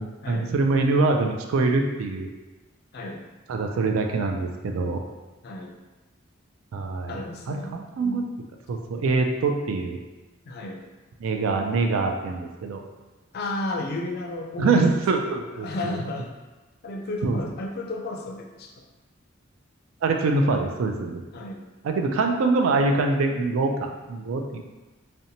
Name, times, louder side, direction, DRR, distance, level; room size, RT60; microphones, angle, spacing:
voice 1, 0.0-2.3 3.5-5.0 6.7-7.2 7.5-8.2 8.7-10.0 11.2-12.8 14.6-15.9 17.2-17.4 20.0-21.2 21.8-24.6, right 3 dB, 80° right, 3 dB, 0.3 m, -24 dB
voice 2, 2.9-3.2 5.4-5.8 7.1-8.3 10.5-10.8 13.3-14.9 15.6-16.3 16.8-18.8 21.3-21.6, left 2 dB, 50° left, 2 dB, 0.4 m, -33 dB
2.8 x 2.1 x 2.6 m, 1.2 s
head